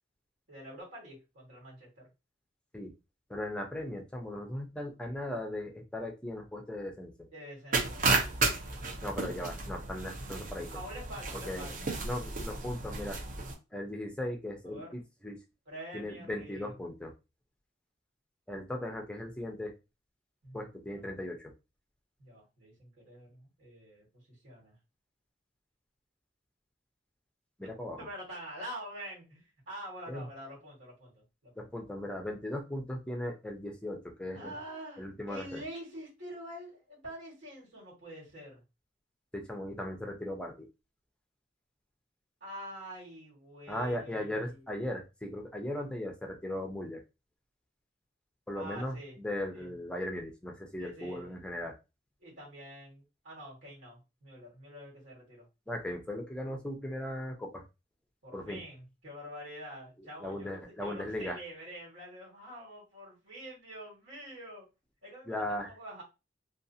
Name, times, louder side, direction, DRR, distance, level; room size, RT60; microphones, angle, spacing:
voice 1, 0.5-2.1 7.3-8.8 10.7-11.9 14.6-15.0 15.7-16.7 20.4-21.1 22.2-24.8 28.0-31.1 31.4-31.7 34.3-38.6 42.4-44.7 48.5-49.2 49.5-49.7 50.8-51.4 52.2-55.5 58.2-64.7 65.0-66.0, right 1 dB, 70° right, -4 dB, 1.6 m, -46 dB
voice 2, 3.3-7.3 9.0-10.7 11.5-13.2 13.7-15.4 15.9-17.1 18.5-19.7 20.5-21.5 27.6-28.0 30.1-30.3 31.6-34.5 35.0-35.6 39.3-40.7 43.7-47.0 48.5-51.7 55.7-57.6 58.3-58.6 60.2-61.4 65.3-65.7, left 1 dB, 5° left, 2 dB, 0.5 m, -38 dB
sound 1, 7.7-13.5, right 3 dB, 45° right, 0.7 m, -33 dB
2.6 x 2.4 x 2.6 m, 0.27 s
head